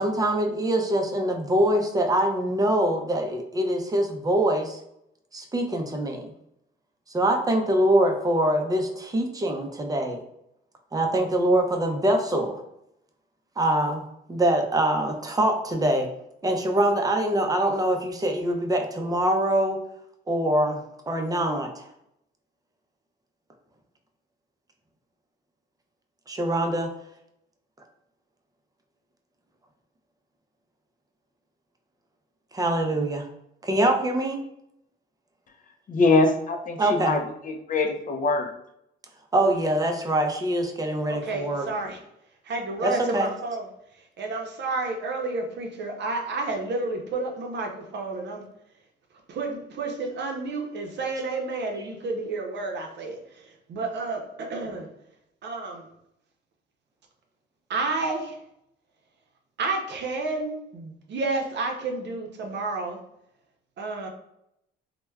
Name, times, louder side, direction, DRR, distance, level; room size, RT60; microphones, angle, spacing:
voice 1, 0.0-4.8 5.3-6.3 7.1-10.2 10.9-12.6 13.6-14.0 14.3-16.1 16.4-19.8 20.3-21.8 26.3-26.9 32.5-33.3 33.6-34.4 36.8-37.1 39.3-41.7 42.8-43.3, right 1 dB, 20° right, 3 dB, 0.5 m, -24 dB
voice 2, 35.9-38.5, left 3 dB, 45° left, 5 dB, 0.4 m, -23 dB
voice 3, 41.0-42.0 42.4-43.7 43.9-48.4 49.3-54.9 55.4-55.9 57.7-58.4 59.6-63.0 63.8-64.1, right 3 dB, 60° right, 2 dB, 0.6 m, -30 dB
3.1 x 2.1 x 2.2 m, 0.80 s
cardioid pair, 90°, 20 cm